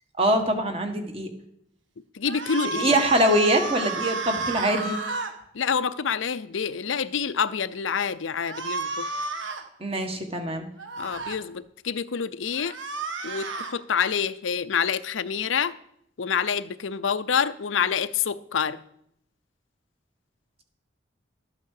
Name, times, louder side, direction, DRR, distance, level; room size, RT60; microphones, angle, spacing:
voice 1, 0.2-1.3 2.7-5.0 9.8-10.7, right 1 dB, 30° right, 1.6 m, -23 dB
voice 2, 2.1-3.0 5.5-9.1 11.0-12.7 13.2-15.7 16.2-18.8, left 7 dB, 90° left, 0.6 m, -27 dB
sound 1, 2.3-5.3 8.4-9.6 10.8-11.4 12.5-13.7, right 3 dB, 80° right, 1.5 m, -32 dB
13.0 x 8.5 x 6.5 m
head